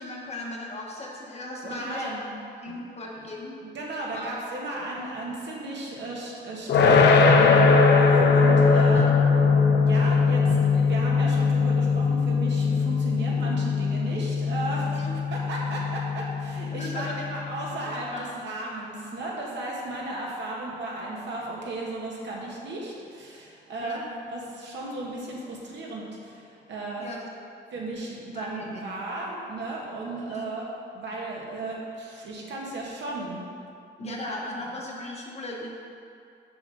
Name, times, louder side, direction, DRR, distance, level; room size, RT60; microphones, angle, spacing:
voice 1, 0.0-2.1 2.6-3.6 4.1-4.4 8.7-9.2 14.9-15.1 16.7-17.2 17.7-18.5 20.6-20.7 23.8-24.0 27.0-27.3 28.3-29.0 30.3-30.5 34.0-35.7, left 1 dB, 35° left, -2 dB, 1.3 m, -37 dB
voice 2, 1.6-2.3 3.1-3.2 3.6-9.1 9.9-15.0 15.3-27.1 27.7-30.7 30.9-33.5 34.0-34.6, right 2 dB, 70° right, -4 dB, 1.7 m, -35 dB
sound 1, 6.7-17.7, left 4 dB, 70° left, 0.7 m, -21 dB
6.9 x 5.4 x 5.6 m, 2.5 s
cardioid pair, 130°, 19 cm